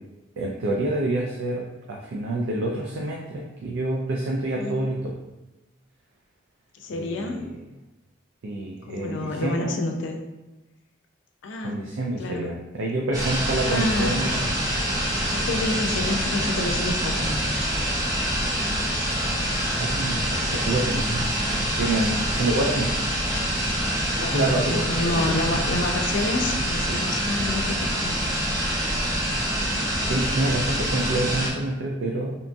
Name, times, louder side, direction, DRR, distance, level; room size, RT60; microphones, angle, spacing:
voice 1, 0.4-5.1 6.9-7.6 8.4-9.7 11.6-14.5 19.8-21.3 21.8-22.9 24.3-24.9 25.3-25.6 29.6-32.4, right 2 dB, 85° right, -1 dB, 0.4 m, -27 dB
voice 2, 6.8-7.4 8.9-10.2 11.4-11.8 12.2-12.5 13.7-14.3 15.3-17.4 18.5-18.7 24.2-28.3, left 2 dB, 70° left, 3 dB, 0.4 m, -29 dB
sound 1, 13.1-31.5, equal, 15° right, 0.4 m, -26 dB
2.8 x 2.6 x 2.3 m, 1.0 s
head